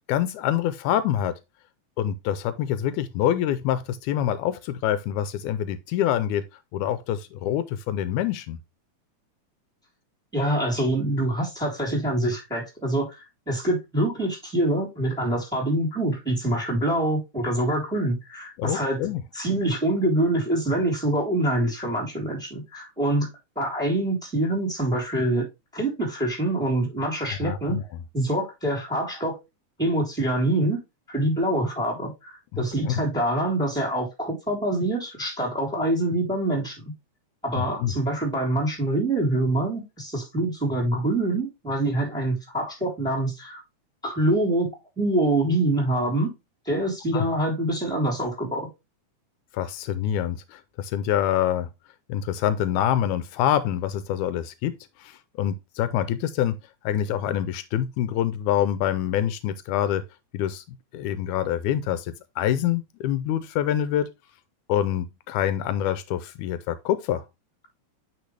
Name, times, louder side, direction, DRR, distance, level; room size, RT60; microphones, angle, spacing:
voice 1, 0.0-1.4 2.0-6.4 6.7-8.6 18.6-19.2 27.4-27.8 32.5-33.0 37.6-38.0 47.1-47.3 49.5-51.7 52.1-56.6 56.8-60.0 60.3-60.6 60.9-64.1 64.7-67.2, left 11 dB, 85° left, 2.0 m, -26 dB
voice 2, 10.3-13.2 13.5-19.0 19.3-23.3 23.5-25.4 25.7-27.8 28.1-29.3 29.8-30.8 31.1-36.9 37.4-43.6 44.0-44.7 45.0-46.3 46.6-48.7, right 1 dB, ahead, 3.4 m, -25 dB
9.3 x 4.1 x 3.2 m
omnidirectional pair, 3.5 m